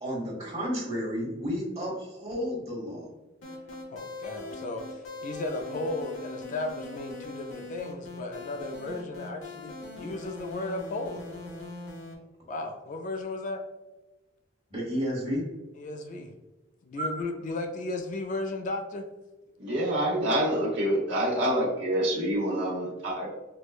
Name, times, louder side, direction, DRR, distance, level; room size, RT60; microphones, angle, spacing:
voice 1, 0.0-3.1 14.7-15.5 17.0-17.2, equal, 30° right, -3 dB, 1.3 m, -32 dB
sound 1, 3.4-12.1, left 2 dB, 85° left, 0.9 m, -41 dB
voice 2, 3.9-11.3 12.5-13.6 15.7-16.3 16.8-19.1, left 2 dB, 40° left, 4 dB, 0.3 m, -35 dB
voice 3, 19.6-23.3, right 1 dB, 65° right, -3 dB, 1.0 m, -27 dB
4.4 x 2.2 x 2.4 m, 1.1 s
head